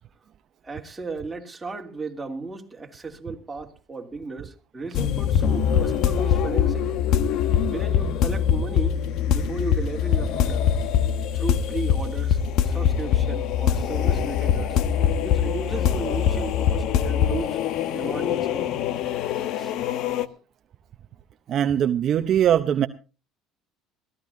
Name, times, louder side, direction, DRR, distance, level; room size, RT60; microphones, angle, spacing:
voice 1, 0.6-6.9 7.6-9.0 9.3-11.1 11.3-14.8 15.2-17.6 17.9-18.9 19.6-19.7, right 3 dB, 15° right, 3.1 m, -35 dB
sound 1, 4.9-20.3, left 8 dB, 60° left, 1.1 m, -23 dB
voice 2, 21.5-22.9, right 10 dB, 45° right, 0.8 m, -21 dB
22.0 x 15.5 x 2.7 m
supercardioid pair, 110°, 0 cm